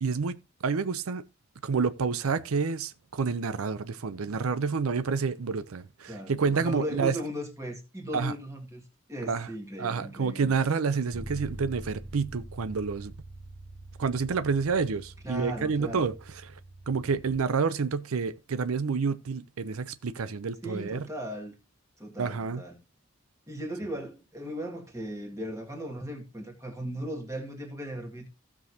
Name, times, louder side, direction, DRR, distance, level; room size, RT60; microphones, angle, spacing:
voice 1, 0.0-0.4 0.6-1.2 1.6-7.1 8.1-8.3 9.3-9.5 9.8-13.1 14.0-16.1 16.4-16.5 16.9-21.1 22.2-22.6, right 5 dB, 90° right, 0.6 m, -29 dB
voice 2, 6.1-10.6 15.2-16.1 20.6-21.6 22.0-22.8 23.5-28.3, equal, 15° right, 1.9 m, -37 dB
Bass guitar, 11.1-17.4, right 1 dB, 75° right, 3.4 m, -44 dB
15.5 x 6.2 x 2.7 m
head